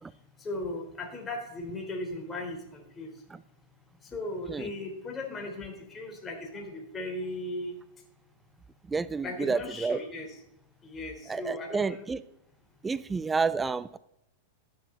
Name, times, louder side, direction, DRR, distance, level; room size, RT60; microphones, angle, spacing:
voice 1, 0.4-3.1 4.0-7.8 9.2-10.3 10.8-12.0, left 2 dB, 20° left, 1 dB, 3.6 m, -37 dB
voice 2, 8.9-10.0 11.3-12.2 12.8-14.0, right 4 dB, 10° right, 17 dB, 0.4 m, -30 dB
14.0 x 10.5 x 3.9 m, 0.82 s
hypercardioid pair, 135°, 0 cm